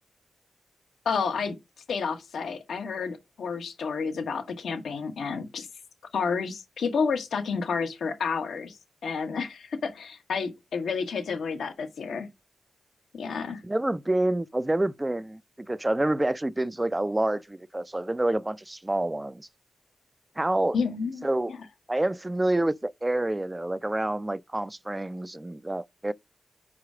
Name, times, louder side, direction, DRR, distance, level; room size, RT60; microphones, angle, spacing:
voice 1, 1.0-1.6 1.9-5.7 6.1-8.8 9.0-12.3 13.1-13.6 20.7-21.6, left 5 dB, 80° left, 1.2 m, -30 dB
voice 2, 13.6-19.5 20.4-20.8 21.2-21.5 21.9-26.1, right 1 dB, 20° right, 0.5 m, -28 dB
4.9 x 4.7 x 6.0 m
cardioid pair, 45°, 0 cm